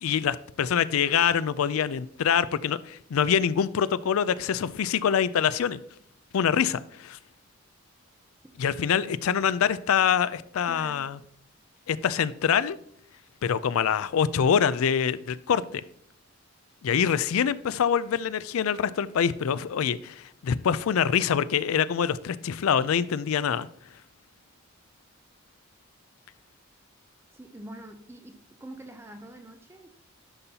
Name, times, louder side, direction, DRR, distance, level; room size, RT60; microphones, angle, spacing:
voice 1, 0.0-5.8 6.3-7.2 8.6-11.2 11.9-12.8 13.4-15.8 16.8-23.7, left 7 dB, 80° left, 0.4 m, -25 dB
voice 2, 10.7-11.1 27.3-29.9, right 1 dB, 10° right, 0.4 m, -45 dB
11.0 x 5.5 x 2.8 m
head